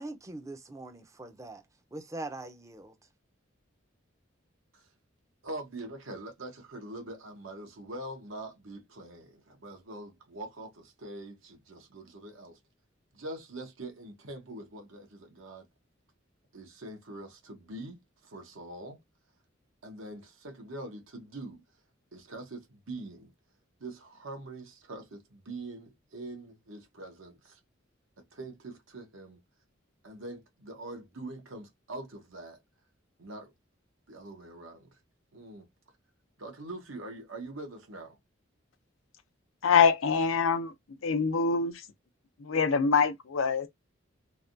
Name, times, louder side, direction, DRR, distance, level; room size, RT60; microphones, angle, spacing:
voice 1, 0.0-1.6 1.9-2.9, right 2 dB, 15° right, 0.5 m, -42 dB
voice 2, 5.4-12.6 13.1-15.7 16.5-19.0 19.8-21.6 22.1-23.3 23.8-27.6 28.2-29.4 30.0-32.6 33.2-33.5 34.1-35.0 35.3-35.7 36.4-38.2, right 2 dB, 80° right, 1.0 m, -43 dB
voice 3, 39.6-40.7 41.0-41.8 42.4-43.7, left 5 dB, 85° left, 0.6 m, -24 dB
3.4 x 2.2 x 2.5 m
head